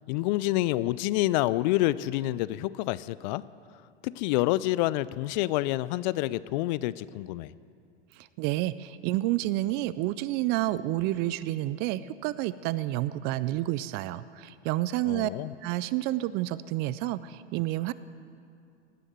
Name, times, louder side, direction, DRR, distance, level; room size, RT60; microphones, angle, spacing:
voice 1, 0.1-3.4 4.0-7.5 15.1-15.5, left 17 dB, 45° left, 18 dB, 0.4 m, -28 dB
voice 2, 8.1-15.3 15.6-17.9, right 16 dB, 30° right, 17 dB, 0.4 m, -29 dB
18.0 x 9.9 x 7.9 m, 2.4 s
hypercardioid pair, 95°, 34 cm